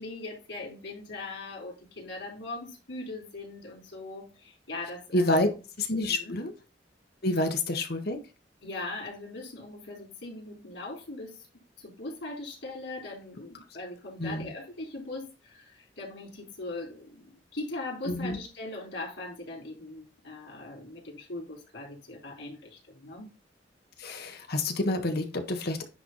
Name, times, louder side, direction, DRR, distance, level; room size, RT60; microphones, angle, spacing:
voice 1, 0.0-5.5 6.0-6.4 8.6-11.5 11.8-23.3, left 2 dB, 75° left, -2 dB, 4.2 m, -40 dB
voice 2, 5.1-5.5 5.8-6.5 7.2-8.2 14.2-14.5 18.0-18.4 24.0-25.9, left 1 dB, 60° left, 6 dB, 1.3 m, -28 dB
10.0 x 3.5 x 3.9 m, 0.30 s
head